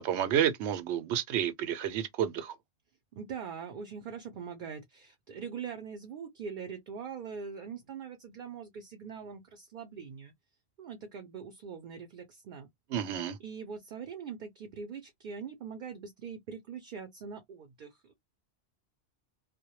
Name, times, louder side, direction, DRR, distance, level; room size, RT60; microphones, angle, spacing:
voice 1, 0.0-2.5 12.9-13.4, right 10 dB, 90° right, 0.9 m, -30 dB
voice 2, 3.1-10.3 10.8-12.7 13.4-18.1, right 6 dB, 60° right, 0.6 m, -42 dB
2.1 x 2.1 x 2.8 m
omnidirectional pair, 1.1 m